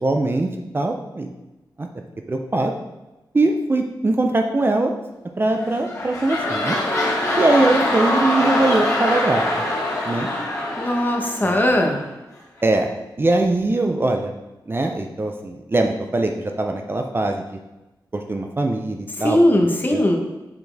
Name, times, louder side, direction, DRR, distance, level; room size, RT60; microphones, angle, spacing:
voice 1, 0.0-1.3 1.8-1.9 2.3-2.7 3.3-4.9 5.4-6.8 7.4-9.4 10.0-10.3 11.4-11.5 12.6-12.9 13.2-14.3 14.7-17.6 18.1-19.4 19.9-20.2, right 2 dB, 30° right, 3 dB, 0.5 m, -21 dB
sound 1, 5.5-12.1 12.6-12.7, left 1 dB, 45° left, 2.0 m, -23 dB
voice 2, 10.8-12.0 19.2-20.2, left 1 dB, 25° left, 1 dB, 1.0 m, -18 dB
6.8 x 4.1 x 3.4 m, 1.0 s
wide cardioid pair, 95°, 8 cm